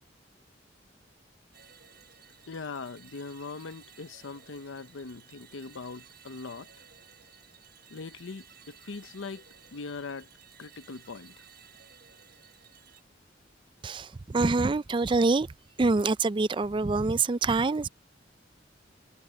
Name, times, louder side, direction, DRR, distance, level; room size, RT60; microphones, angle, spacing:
sound 1, 1.5-13.0, right 8 dB, 55° right, 7.4 m, -56 dB
voice 1, 2.5-6.7 7.9-9.4 9.7-10.3 10.6-11.3, left 4 dB, 80° left, 0.7 m, -41 dB
voice 2, 13.8-15.5 15.8-17.9, right 3 dB, 25° right, 0.4 m, -25 dB
head